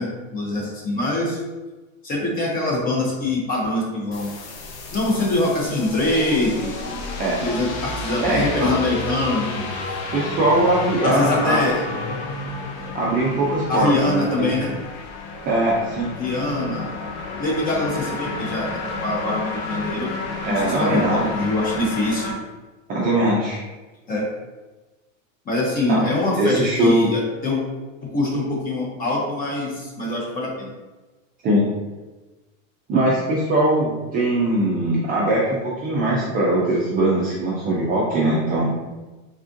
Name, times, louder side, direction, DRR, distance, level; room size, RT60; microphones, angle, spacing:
voice 1, 0.0-1.4 2.0-4.3 4.9-6.8 7.4-9.5 11.0-11.8 13.7-14.7 16.2-16.9 17.4-20.1 20.5-22.3 24.1-24.3 25.5-27.6 28.0-30.7, left 2 dB, 20° left, -2 dB, 0.7 m, -23 dB
sound 1, 4.1-22.3, left 3 dB, 55° left, 0.8 m, -31 dB
voice 2, 8.2-8.8 10.1-11.6 12.9-14.6 15.5-16.1 20.4-21.3 22.9-23.6 25.9-26.1 26.3-27.0 31.4-31.6 32.9-38.7, right 1 dB, 25° right, -5 dB, 0.4 m, -21 dB
3.5 x 2.4 x 2.6 m, 1.2 s
supercardioid pair, 135°, 40 cm